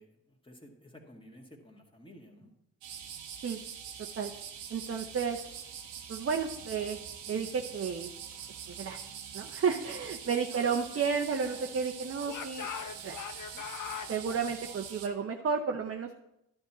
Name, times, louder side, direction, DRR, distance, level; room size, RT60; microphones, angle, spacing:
voice 1, 0.0-2.5 9.9-10.1, equal, 10° left, 0 dB, 1.9 m, -54 dB
sound 1, 2.8-15.1, right 8 dB, 80° right, 1.0 m, -44 dB
voice 2, 4.0-4.3 4.7-5.4 6.1-7.0 7.3-8.1 8.7-9.0 9.3-12.7 13.0-13.2 13.5-13.6 14.1-16.2, right 6 dB, 30° right, 4 dB, 0.8 m, -32 dB
Speech / Shout, 10.3-11.8 12.2-14.1, left 8 dB, 40° left, 0.7 m, -42 dB
11.5 x 4.3 x 6.1 m, 0.84 s
hypercardioid pair, 40°, 46 cm